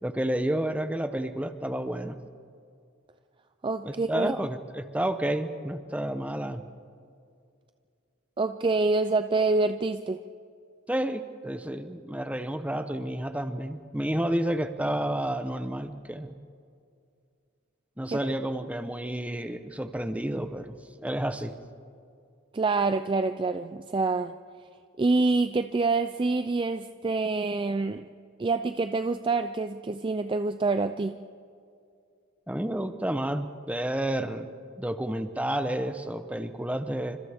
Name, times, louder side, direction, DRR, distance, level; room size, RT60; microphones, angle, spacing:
voice 1, 0.0-2.2 3.8-6.6 10.9-16.3 18.0-21.5 32.5-34.5 34.8-37.2, right 1 dB, 5° right, 9 dB, 0.9 m, -30 dB
voice 2, 3.6-4.3 8.4-10.2 18.1-18.2 22.5-24.3 25.0-28.0 28.4-31.2, right 3 dB, 25° right, 9 dB, 0.4 m, -26 dB
29.5 x 25.5 x 3.6 m, 2.4 s
head